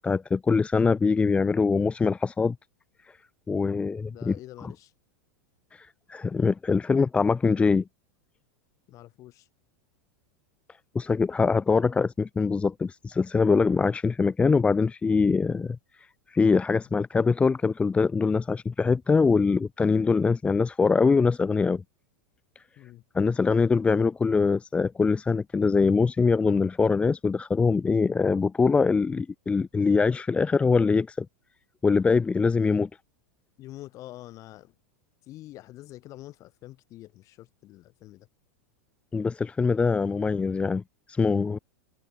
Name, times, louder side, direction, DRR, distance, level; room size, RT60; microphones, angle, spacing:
voice 1, 0.0-2.6 3.0-3.1 3.5-4.3 4.6-4.7 5.7-7.8 10.9-21.8 22.6-22.7 23.1-31.3 31.8-32.9 39.1-41.6, left 4 dB, 15° left, 0.8 m, -23 dB
voice 2, 4.1-4.9 8.9-9.5 22.8-23.0 33.6-34.7 35.3-38.3, left 16 dB, 40° left, 5.8 m, -46 dB
hypercardioid pair, 110°, 8 cm